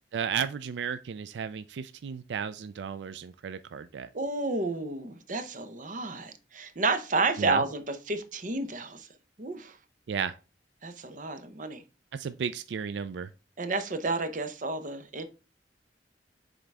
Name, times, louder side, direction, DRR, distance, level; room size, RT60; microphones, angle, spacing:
voice 1, 0.1-4.1 7.4-7.6 10.1-10.3 12.1-13.3, right 7 dB, 85° right, 0.4 m, -33 dB
voice 2, 4.1-9.1 9.4-9.8 10.8-11.8 13.6-15.3, right 3 dB, 45° right, 0.8 m, -31 dB
7.2 x 3.9 x 3.4 m
head